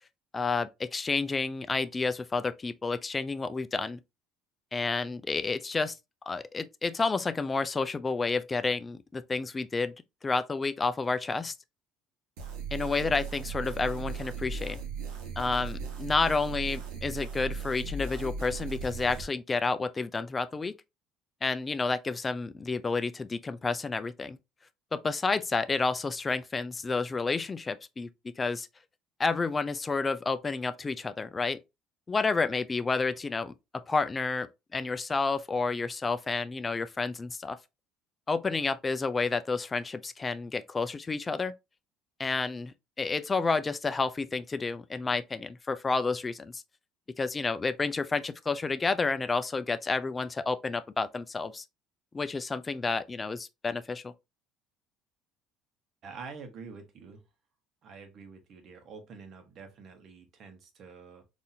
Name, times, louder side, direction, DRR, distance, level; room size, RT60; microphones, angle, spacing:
voice 1, 0.3-4.0 4.7-6.0 6.3-9.9 10.2-11.5 12.7-14.8 15.4-20.8 21.4-24.4 24.9-28.1 28.4-28.7 29.2-31.6 32.1-37.6 38.3-41.5 42.2-46.6 47.2-51.6 52.1-54.1, left 4 dB, 20° left, 0.3 m, -30 dB
sound 1, 12.4-19.2, right 5 dB, 85° right, 1.1 m, -37 dB
voice 2, 56.0-57.2 57.8-61.2, right 5 dB, 45° right, 0.9 m, -47 dB
4.0 x 2.6 x 2.7 m
cardioid pair, 145°, 0 cm